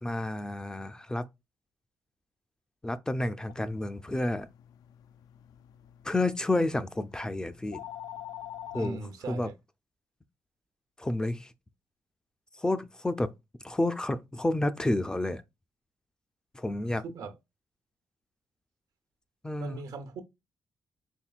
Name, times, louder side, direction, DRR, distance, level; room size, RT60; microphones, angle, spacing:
voice 1, 0.0-1.3 2.8-4.5 6.0-7.8 8.7-9.0 9.3-9.5 11.0-11.5 12.6-13.3 13.6-15.4 16.5-17.0 19.4-19.8, left 2 dB, 10° left, 0.3 m, -30 dB
sound 1, 3.5-8.9, left 11 dB, 90° left, 0.3 m, -46 dB
voice 2, 8.7-9.5 17.0-17.3 19.6-20.2, right 3 dB, 80° right, 0.8 m, -39 dB
4.4 x 3.4 x 2.4 m
cardioid pair, 140°, 6 cm